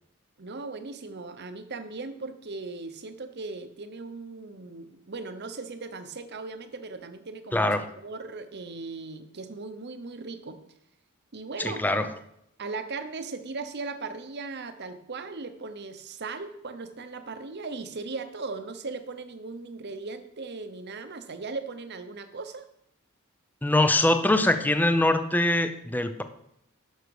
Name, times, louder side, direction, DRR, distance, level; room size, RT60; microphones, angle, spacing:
voice 1, 0.4-7.7 8.0-10.6 11.3-11.8 12.6-22.7, right 3 dB, 50° right, 9 dB, 0.9 m, -38 dB
voice 2, 7.5-7.9 11.6-12.1 23.6-26.2, left 1 dB, 10° left, 9 dB, 0.6 m, -23 dB
11.0 x 6.5 x 4.8 m, 0.78 s
head